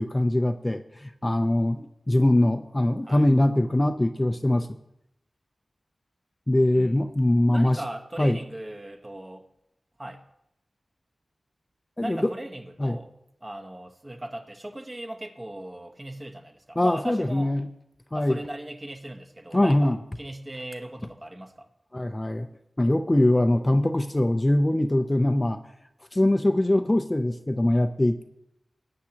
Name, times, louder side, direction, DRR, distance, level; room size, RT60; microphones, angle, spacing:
voice 1, 0.0-4.7 6.5-7.8 8.2-8.4 12.0-12.3 12.8-13.0 16.8-17.7 18.1-18.4 19.5-20.0 21.9-22.5 22.8-25.6 26.1-28.2, left 1 dB, 20° left, 0.5 m, -22 dB
voice 2, 7.5-9.5 10.0-10.3 12.0-13.1 13.4-17.5 18.1-21.7, right 1 dB, 25° right, 1.1 m, -38 dB
19.5 x 8.5 x 2.9 m
wide cardioid pair, 75°, 0 cm